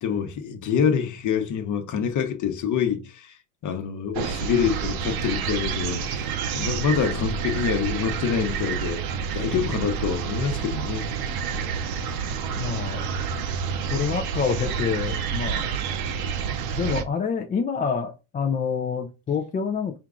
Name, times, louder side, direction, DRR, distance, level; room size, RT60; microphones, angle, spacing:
voice 1, 0.0-3.4 3.6-6.2 6.5-9.0 9.3-11.1, left 7 dB, 40° left, 1.0 m, -26 dB
sound 1, 4.1-17.0, right 7 dB, 50° right, 0.7 m, -29 dB
voice 2, 12.6-13.1 13.9-15.7 16.7-20.0, left 6 dB, 20° left, 0.4 m, -27 dB
4.5 x 2.4 x 3.7 m
supercardioid pair, 110°, 45 cm